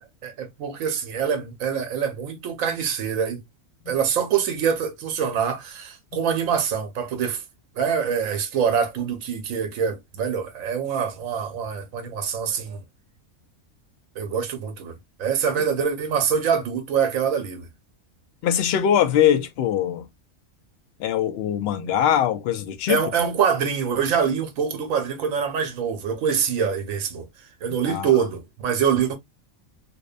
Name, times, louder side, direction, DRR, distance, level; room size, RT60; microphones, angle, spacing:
voice 1, 0.2-3.4 3.9-7.4 7.8-12.8 14.2-17.7 22.9-27.3 27.6-29.2, right 7 dB, 80° right, 1.1 m, -25 dB
voice 2, 18.4-20.0 21.0-23.0 27.9-28.1, left 10 dB, 65° left, 0.6 m, -22 dB
2.7 x 2.1 x 2.3 m
omnidirectional pair, 1.4 m